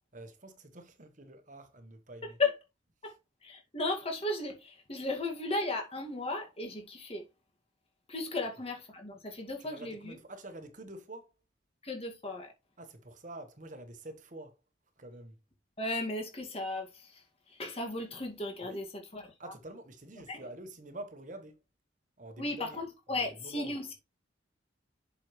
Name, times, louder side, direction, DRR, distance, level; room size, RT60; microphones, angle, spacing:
voice 1, 0.1-2.4 8.4-8.5 9.6-11.3 12.8-14.6 15.0-15.4 18.6-18.8 19.4-21.6 22.2-22.8 23.1-23.8, right 2 dB, 40° right, 1.3 m, -47 dB
voice 2, 3.4-7.3 8.1-10.2 11.8-12.5 15.8-18.8 19.1-19.5 20.3-20.4 22.4-23.9, left 2 dB, 30° left, 2.0 m, -35 dB
7.6 x 6.3 x 3.1 m
head